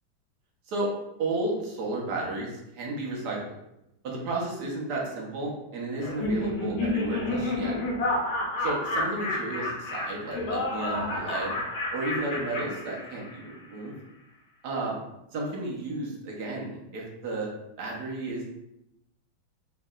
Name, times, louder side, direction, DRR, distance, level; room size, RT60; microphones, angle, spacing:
voice 1, 1.2-3.6 4.0-7.7 8.6-11.6 11.9-13.9 14.6-15.0 15.3-17.5 17.8-18.4, right 2 dB, 55° right, -2 dB, 1.5 m, -33 dB
Laughter, 6.0-13.5, left 2 dB, 55° left, 1.4 m, -30 dB
4.6 x 4.0 x 2.5 m, 0.85 s
omnidirectional pair, 2.2 m